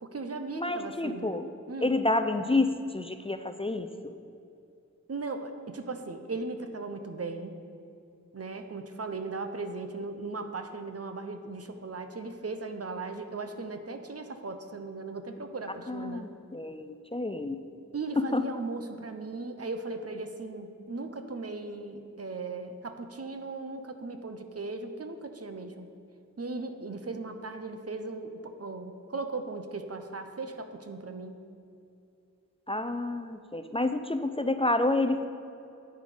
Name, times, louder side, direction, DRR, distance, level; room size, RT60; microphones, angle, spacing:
voice 1, 0.0-1.4 1.7-1.9 5.1-7.6 8.3-16.3 17.9-25.9 26.4-31.4, right 3 dB, 55° right, 7 dB, 0.8 m, -37 dB
voice 2, 0.6-1.5 1.8-4.1 15.9-17.6 18.3-18.4 32.7-35.3, left 2 dB, 20° left, 8 dB, 0.5 m, -29 dB
9.2 x 8.9 x 5.0 m, 2.6 s
wide cardioid pair, 65°, 30 cm